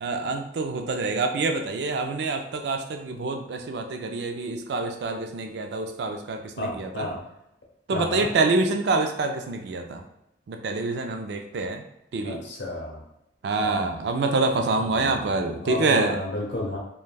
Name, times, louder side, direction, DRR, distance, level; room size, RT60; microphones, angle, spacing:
voice 1, 0.0-7.1 7.9-10.0 10.5-11.8 12.1-12.4 13.4-16.2, right 3 dB, 65° right, 5 dB, 0.3 m, -26 dB
voice 2, 6.6-7.2 7.9-8.3 12.2-13.0 13.6-14.0 14.9-15.1 15.6-16.8, left 1 dB, 70° left, -1 dB, 0.8 m, -32 dB
3.2 x 2.2 x 2.3 m, 0.85 s
head